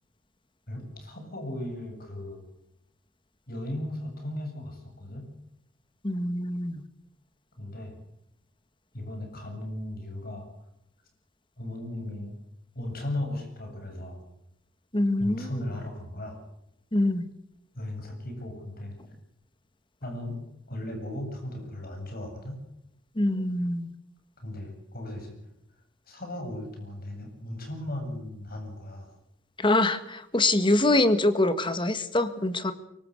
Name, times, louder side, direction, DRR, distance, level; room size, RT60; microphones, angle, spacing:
voice 1, 0.7-2.4 3.5-5.3 7.6-8.0 8.9-10.5 11.6-12.3 12.7-14.2 15.2-16.4 17.7-19.0 20.0-20.4 20.7-22.6 24.4-25.4 26.1-29.1, left 1 dB, 50° left, 4 dB, 7.8 m, -36 dB
voice 2, 6.0-6.8 14.9-15.5 16.9-17.2 23.2-23.9 29.6-32.7, left 2 dB, 25° left, 11 dB, 1.7 m, -24 dB
24.5 x 24.0 x 6.6 m, 0.81 s
head